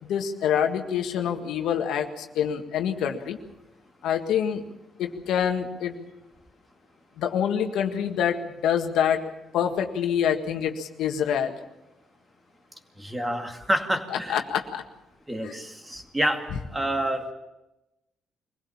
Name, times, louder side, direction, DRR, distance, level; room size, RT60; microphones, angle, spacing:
voice 1, 0.0-3.4 4.0-4.6 5.0-6.0 7.2-9.2 9.5-11.6 14.1-14.8 15.4-15.5, left 8 dB, 85° left, 5 dB, 1.7 m, -26 dB
voice 2, 13.0-14.4 15.3-16.4 16.7-17.3, right 1 dB, 15° right, 5 dB, 2.4 m, -28 dB
23.5 x 16.5 x 7.2 m, 0.97 s
cardioid pair, 90°, 0 cm